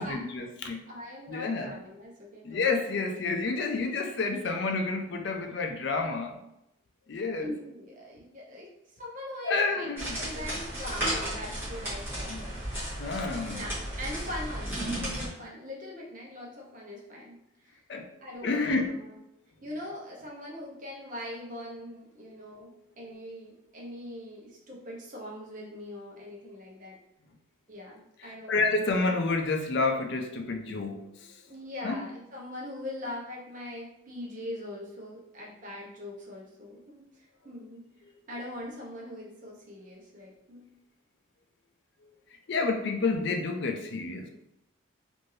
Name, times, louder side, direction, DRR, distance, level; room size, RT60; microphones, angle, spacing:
voice 1, 0.0-0.9 1.3-1.7 2.4-6.4 7.1-7.5 9.4-10.2 12.3-12.4 13.0-13.6 17.9-18.1 18.4-18.9 28.2-31.4 31.8-32.0 42.5-44.3, left 3 dB, 55° left, 4 dB, 0.4 m, -29 dB
voice 2, 0.9-2.7 7.4-8.7 9.0-9.9 10.2-12.6 13.5-17.8 18.2-19.2 19.6-27.0 27.7-28.6 31.5-37.9 38.3-40.7, left 1 dB, 40° right, -3 dB, 0.8 m, -41 dB
sound 1, 10.0-15.3, right 1 dB, 10° right, 1.1 m, -34 dB
3.2 x 2.6 x 2.7 m, 0.85 s
head